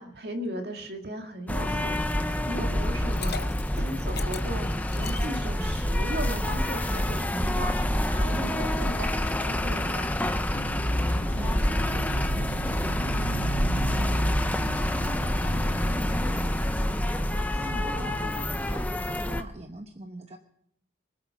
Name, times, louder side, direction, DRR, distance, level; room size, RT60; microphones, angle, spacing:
voice 1, 0.0-2.2 2.5-10.1 17.5-18.1, right 1 dB, 55° right, 4 dB, 2.2 m, -37 dB
sound 1, 1.5-19.4, left 1 dB, 10° left, 0.7 m, -27 dB
Liquid, 2.9-6.0, left 8 dB, 55° left, 0.8 m, -40 dB
sound 2, 10.5-15.8, right 2 dB, 25° left, 3.2 m, -37 dB
voice 2, 11.2-20.4, right 1 dB, 35° right, 4 dB, 1.0 m, -42 dB
25.0 x 8.6 x 5.9 m, 0.73 s
head